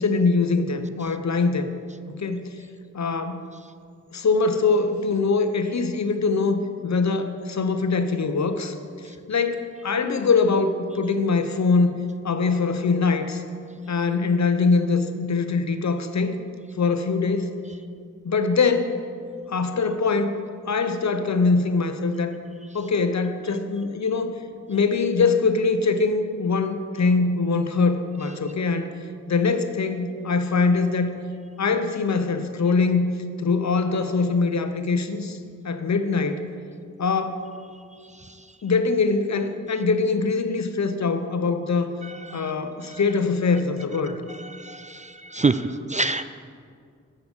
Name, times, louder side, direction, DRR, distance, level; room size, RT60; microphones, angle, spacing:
voice 1, 0.0-1.7 2.1-2.5 2.9-3.5 4.1-8.7 9.3-13.4 13.9-16.4 16.8-17.5 18.2-19.0 19.5-20.3 20.7-22.3 22.7-24.4 24.7-28.9 29.3-31.1 31.6-33.1 33.4-35.4 35.6-36.5 37.0-37.5 38.6-41.9 42.3-44.2, left 4 dB, 65° left, 9 dB, 0.8 m, -23 dB
voice 2, 44.5-46.3, right 3 dB, 25° right, 12 dB, 0.4 m, -25 dB
8.0 x 6.7 x 7.1 m, 2.2 s
cardioid pair, 50°, 30 cm